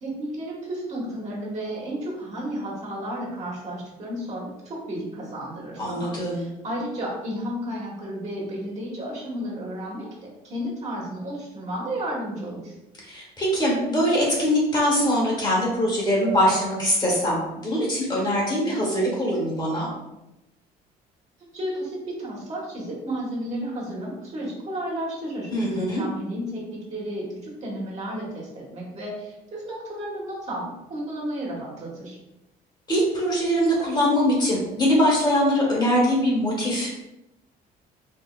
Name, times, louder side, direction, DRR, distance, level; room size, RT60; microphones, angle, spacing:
voice 1, 0.0-12.7 21.4-32.2, right 1 dB, 40° right, -4 dB, 1.4 m, -33 dB
voice 2, 5.8-6.4 13.0-19.9 25.5-26.0 32.9-37.0, equal, 25° left, -4 dB, 1.3 m, -22 dB
4.5 x 2.7 x 2.3 m, 0.93 s
cardioid pair, 110°, 17 cm